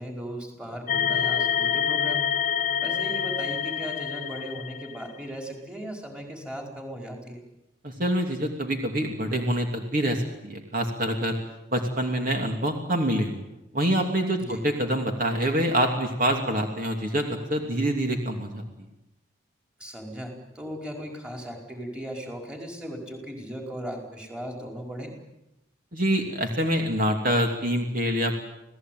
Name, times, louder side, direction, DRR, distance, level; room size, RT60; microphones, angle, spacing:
voice 1, 0.0-2.3 2.8-7.4 14.4-14.6 19.8-25.1, equal, 5° right, 1 dB, 4.9 m, -37 dB
sound 1, 0.9-5.2, left 8 dB, 40° left, 1.6 m, -27 dB
voice 2, 7.8-11.4 11.7-13.4 13.7-18.6 25.9-28.3, right 1 dB, 45° right, 3 dB, 2.9 m, -26 dB
28.5 x 18.0 x 9.4 m, 0.93 s
head